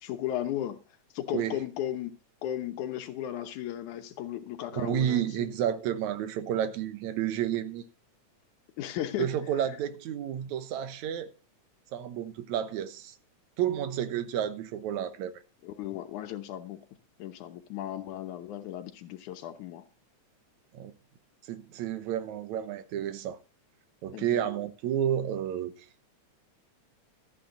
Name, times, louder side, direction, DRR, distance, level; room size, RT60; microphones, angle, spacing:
voice 1, 0.0-0.8 1.1-2.1 2.4-5.5 8.8-9.3 15.6-16.8 17.2-19.8 24.1-24.4, left 12 dB, 85° left, 2.5 m, -35 dB
voice 2, 4.7-7.8 9.2-11.3 11.9-13.2 13.6-15.4 20.7-20.9 21.5-23.4 24.0-25.7, right 10 dB, 80° right, 2.3 m, -31 dB
13.5 x 8.8 x 3.8 m
omnidirectional pair, 3.4 m